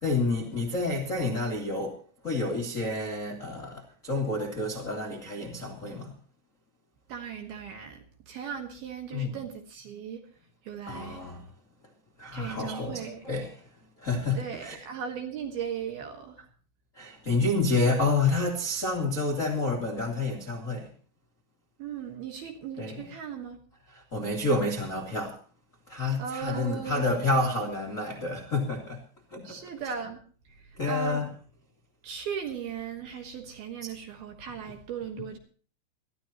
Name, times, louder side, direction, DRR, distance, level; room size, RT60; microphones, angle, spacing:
voice 1, 0.0-1.9 2.2-6.1 9.1-9.4 10.9-11.4 12.2-13.6 14.0-14.8 16.9-20.9 22.8-23.0 23.9-25.4 25.9-29.0 29.3-29.9 30.8-31.3, left 2 dB, 65° left, -1 dB, 0.7 m, -29 dB
voice 2, 7.1-10.2 10.6-11.2 12.3-13.2 14.3-16.4 21.8-23.6 26.2-27.3 29.4-30.2 30.5-31.2 32.0-35.4, right 7 dB, 65° right, 4 dB, 2.6 m, -37 dB
21.5 x 14.0 x 2.9 m, 0.41 s
omnidirectional pair, 5.9 m